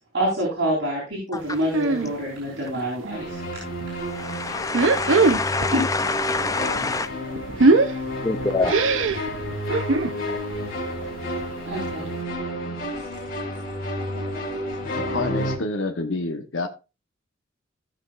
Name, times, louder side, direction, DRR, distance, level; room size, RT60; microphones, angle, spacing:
voice 1, 0.1-3.4 5.7-5.9 7.2-7.7 10.3-10.4 11.0-11.1 11.6-12.2 14.1-14.7, equal, 65° right, 3.8 m, -27 dB
sound 1, 1.7-2.1 2.5-3.3 3.7-3.9 4.6-5.8 6.1-10.2 10.6-10.8 11.1-11.2 11.4-11.5 12.0-12.1, right 3 dB, 85° right, 0.8 m, -21 dB
sound 2, 3.1-15.6, left 1 dB, 50° left, 3.2 m, -31 dB
voice 2, 4.1-7.1 8.2-8.7, left 3 dB, 20° left, 0.5 m, -25 dB
voice 3, 15.0-16.7, left 2 dB, 80° left, 1.1 m, -28 dB
15.5 x 6.2 x 2.5 m
head